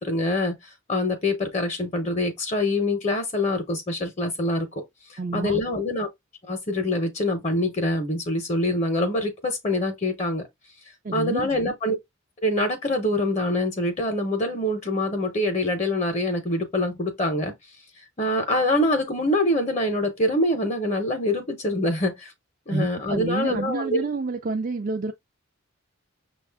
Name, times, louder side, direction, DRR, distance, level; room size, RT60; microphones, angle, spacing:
voice 1, 0.0-4.8 5.1-6.1 6.5-10.5 11.1-12.0 12.4-17.5 18.2-22.3 22.7-24.0, left 1 dB, 30° left, 0.7 m, -25 dB
voice 2, 5.2-5.6 11.0-11.5 22.7-25.1, right 3 dB, 40° right, 0.4 m, -28 dB
6.1 x 2.3 x 3.4 m
head